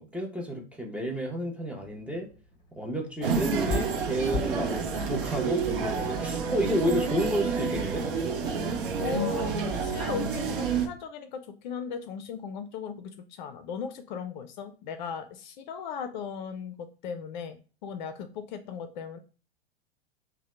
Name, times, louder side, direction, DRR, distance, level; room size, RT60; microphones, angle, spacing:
voice 1, 0.0-2.3 2.7-8.1, equal, 5° right, -1 dB, 0.6 m, -31 dB
sound 1, 1.8-6.6, left 3 dB, 15° left, 1.0 m, -39 dB
sound 2, 3.2-10.9, right 5 dB, 55° right, 0.7 m, -29 dB
voice 2, 9.0-9.5 9.8-19.2, left 6 dB, 45° left, 8 dB, 0.5 m, -37 dB
2.7 x 2.1 x 3.2 m, 0.36 s
figure-of-eight pair, 95°, 32 cm